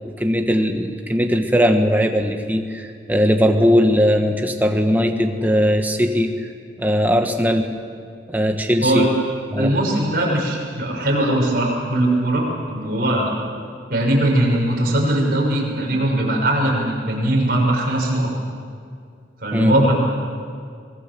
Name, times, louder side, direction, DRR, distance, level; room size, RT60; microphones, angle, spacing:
voice 1, 0.0-6.3 6.8-7.7 8.3-9.1 9.5-9.7 19.5-19.8, equal, 10° right, 4 dB, 1.4 m, -19 dB
voice 2, 9.6-13.3 13.9-18.3 19.4-20.0, right 1 dB, 50° right, -3 dB, 6.5 m, -20 dB
25.5 x 19.5 x 7.7 m, 2.2 s
head